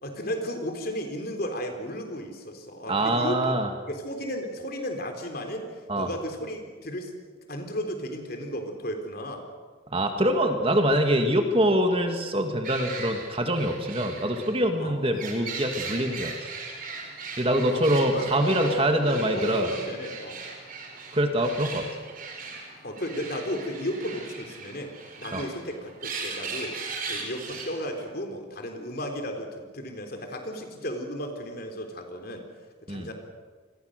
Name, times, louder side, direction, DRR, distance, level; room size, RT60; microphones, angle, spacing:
voice 1, 0.0-3.6 3.9-7.1 7.5-9.4 14.8-15.0 17.7-20.4 22.8-26.8 27.1-32.4 32.9-33.1, equal, 50° left, 4 dB, 3.6 m, -34 dB
voice 2, 2.9-3.7 5.9-6.1 9.9-16.5 17.4-19.7 21.1-21.9 25.3-25.4 32.9-33.1, right 1 dB, 30° right, 5 dB, 2.1 m, -24 dB
sound 1, 12.6-28.1, right 4 dB, 45° right, 4.7 m, -39 dB
28.5 x 22.0 x 6.7 m, 1.5 s
head